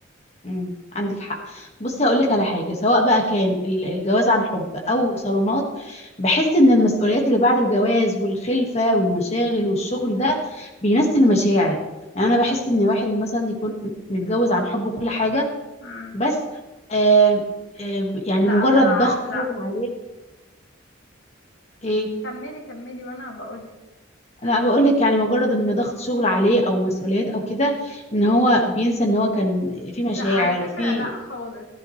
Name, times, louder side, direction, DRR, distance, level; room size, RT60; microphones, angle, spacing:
voice 1, 0.4-11.8 12.2-13.7 14.1-15.5 16.1-16.3 16.9-17.4 17.8-19.9 21.8-22.1 24.4-31.1, equal, 35° left, 1 dB, 1.8 m, -20 dB
voice 2, 15.8-16.2 18.4-19.4 22.2-23.7 30.1-31.7, left 2 dB, 80° left, -1 dB, 2.6 m, -32 dB
14.5 x 11.5 x 3.3 m, 1.1 s
head